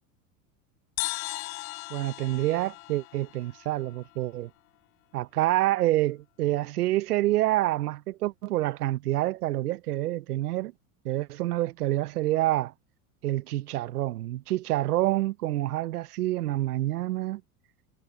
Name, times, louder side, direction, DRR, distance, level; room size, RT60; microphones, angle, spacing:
sound 1, 1.0-4.5, left 23 dB, 65° left, 0.9 m, -37 dB
voice 1, 1.9-4.5 5.1-10.7 11.0-12.7 13.2-17.4, right 15 dB, 85° right, 0.9 m, -27 dB
hypercardioid pair, 105°, 44 cm